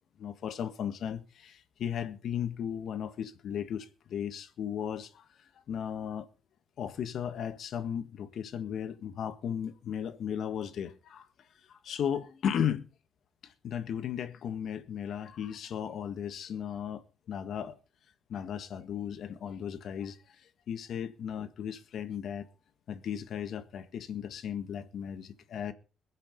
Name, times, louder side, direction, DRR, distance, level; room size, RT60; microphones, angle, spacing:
voice 1, 0.2-5.2 5.7-6.3 6.8-11.3 11.7-12.9 13.4-17.8 18.3-20.4 20.7-22.5 22.9-25.7, left 8 dB, 65° left, 1.6 m, -36 dB
22.0 x 7.6 x 5.3 m
cardioid pair, 90°, 0 cm